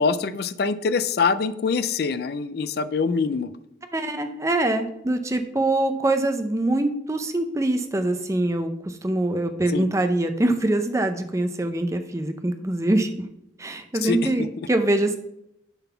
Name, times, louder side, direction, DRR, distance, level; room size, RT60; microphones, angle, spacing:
voice 1, 0.0-3.5 9.7-9.9 14.0-14.5, left 5 dB, 55° left, 13 dB, 0.4 m, -24 dB
voice 2, 3.9-13.2 13.6-15.2, right 1 dB, 15° right, 8 dB, 0.5 m, -24 dB
7.0 x 4.0 x 5.6 m, 0.82 s
head